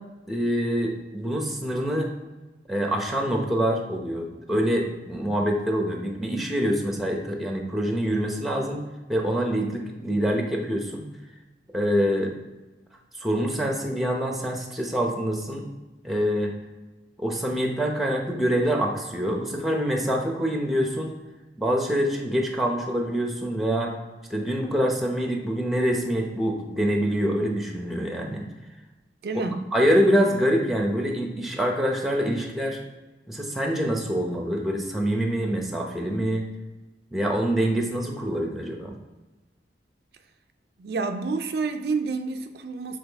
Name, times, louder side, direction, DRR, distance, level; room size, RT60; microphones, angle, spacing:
voice 1, 0.3-2.1 2.7-8.8 9.1-11.1 11.7-12.3 13.1-15.6 16.0-16.5 17.2-21.1 21.6-23.9 24.3-28.5 29.3-32.8 33.3-36.5 37.1-38.9, equal, ahead, 0.8 m, -25 dB
voice 2, 29.2-29.6 40.8-43.0, right 4 dB, 60° right, 0.4 m, -29 dB
7.3 x 4.0 x 3.5 m
head